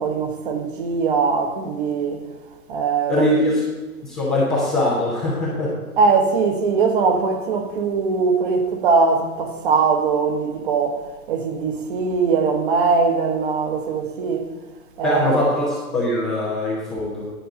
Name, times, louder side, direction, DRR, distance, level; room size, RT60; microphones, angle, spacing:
voice 1, 0.0-2.2 2.7-3.3 6.0-14.5 15.0-15.4, right 4 dB, 35° right, 1.1 m, -21 dB
voice 2, 3.1-3.6 4.0-5.7 15.0-15.7 15.9-17.3, left 1 dB, 5° left, 0.5 m, -21 dB
10.0 x 4.6 x 7.4 m
hypercardioid pair, 145°, 45 cm